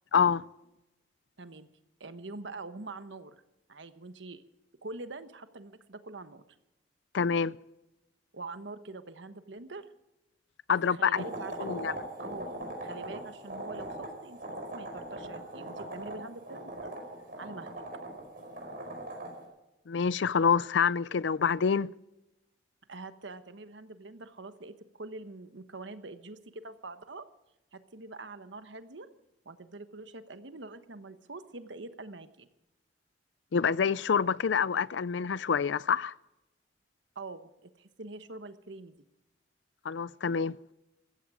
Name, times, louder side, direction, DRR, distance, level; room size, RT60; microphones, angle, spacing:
voice 1, 0.1-0.4 7.1-7.6 10.7-11.2 11.6-11.9 19.9-21.9 33.5-36.1 39.8-40.6, left 6 dB, 75° left, 0.5 m, -27 dB
voice 2, 1.4-1.7 2.0-3.4 3.7-4.4 4.8-6.4 8.3-9.9 10.7-11.8 12.2-16.9 17.4-17.8 22.9-27.3 27.7-29.1 29.4-32.5 37.1-38.9, right 3 dB, 75° right, 1.2 m, -44 dB
sound 1, 11.1-19.4, right 1 dB, 50° right, 5.1 m, -40 dB
15.5 x 14.5 x 4.9 m
head